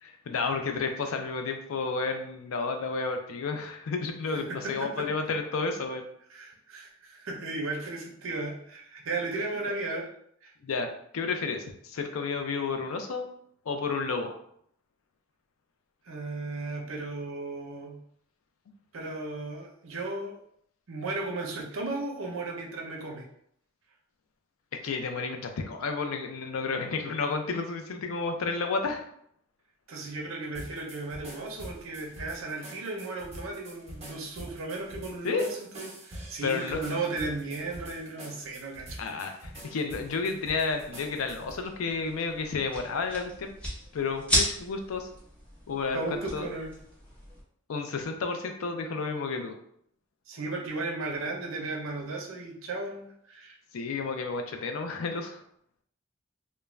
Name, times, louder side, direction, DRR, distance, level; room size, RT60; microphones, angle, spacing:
voice 1, 0.0-6.0 10.6-10.9 11.1-13.2 13.7-14.4 24.8-29.1 35.2-35.5 36.4-37.0 39.0-43.5 43.9-45.1 45.7-46.0 46.3-46.5 47.7-49.6 53.7-55.4, left 4 dB, 90° left, 5 dB, 0.4 m, -31 dB
voice 2, 4.3-5.0 6.3-10.1 10.4-10.5 16.0-18.0 18.9-20.4 20.9-23.3 29.9-39.4 45.9-46.7 50.3-53.6, right 3 dB, 75° right, 1 dB, 0.6 m, -35 dB
sound 1, 30.5-41.6, right 1 dB, 30° right, 0.7 m, -45 dB
sound 2, 40.7-47.4, equal, 5° left, 0.7 m, -35 dB
2.4 x 2.1 x 3.1 m, 0.68 s
head